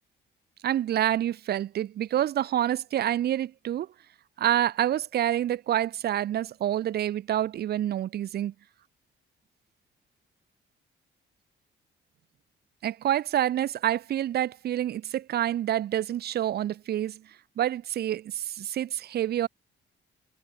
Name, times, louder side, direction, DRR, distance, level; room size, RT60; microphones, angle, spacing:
voice 1, 0.6-3.9 4.4-8.5 12.8-17.2 17.6-19.5, right 11 dB, 55° right, 0.5 m, -27 dB
cardioid pair, 90°, 20 cm